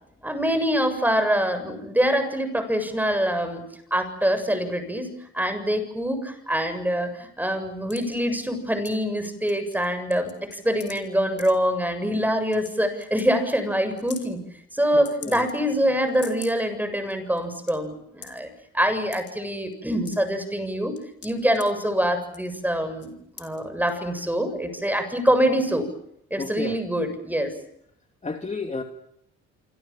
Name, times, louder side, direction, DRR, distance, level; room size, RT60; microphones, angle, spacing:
voice 1, 0.2-3.6 3.9-14.4 14.7-18.5 18.7-20.9 21.2-25.9 26.3-27.5, equal, 5° right, 9 dB, 7.5 m, -25 dB
sound 1, 7.9-8.0 8.8-9.0 9.2-9.9 10.1-11.0 11.4-11.5 12.1-12.2 12.5-12.7 13.0-13.2 13.5-13.6 14.0-14.3 15.0-15.7 16.1-16.6 17.1-17.2 17.4-17.7 18.2-18.4 19.1-19.3 19.7-20.4 21.0-21.6 22.3-22.5 23.0-23.1 23.4-23.6 23.9-24.0, left 7 dB, 50° left, 5.7 m, -42 dB
voice 2, 14.9-15.4 26.4-26.8 28.2-28.8, left 3 dB, 25° left, 4 dB, 2.8 m, -31 dB
27.0 x 26.5 x 7.4 m, 0.74 s
cardioid pair, 90°, 30 cm